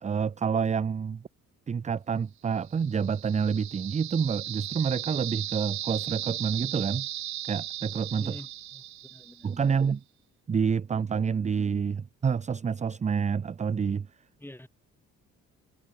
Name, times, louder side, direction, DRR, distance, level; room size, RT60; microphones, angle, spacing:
voice 1, 0.0-1.2 1.7-7.1 7.5-8.4 9.4-10.0 10.5-14.1, right 6 dB, 25° right, 0.5 m, -28 dB
sound 1, 2.7-9.6, right 13 dB, 70° right, 1.0 m, -37 dB
voice 2, 8.2-9.8 14.4-14.7, left 1 dB, 5° left, 7.6 m, -47 dB
cardioid pair, 90°, 30 cm